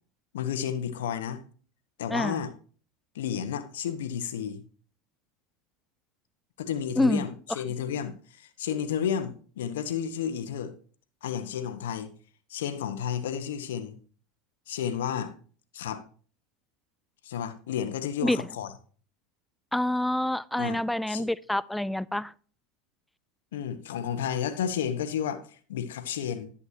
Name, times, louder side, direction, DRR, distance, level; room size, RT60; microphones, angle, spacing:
voice 1, 0.3-1.4 2.0-2.5 3.1-4.6 6.6-10.7 11.2-12.1 12.5-14.0 14.7-15.3 15.7-16.0 17.2-18.7 20.6-20.8 21.1-21.2 23.5-26.5, left 8 dB, 80° left, 1.2 m, -32 dB
voice 2, 2.1-2.4 7.0-7.3 18.2-18.5 19.7-22.3, left 1 dB, 5° left, 0.3 m, -27 dB
11.0 x 8.3 x 2.8 m
hypercardioid pair, 95°, 0 cm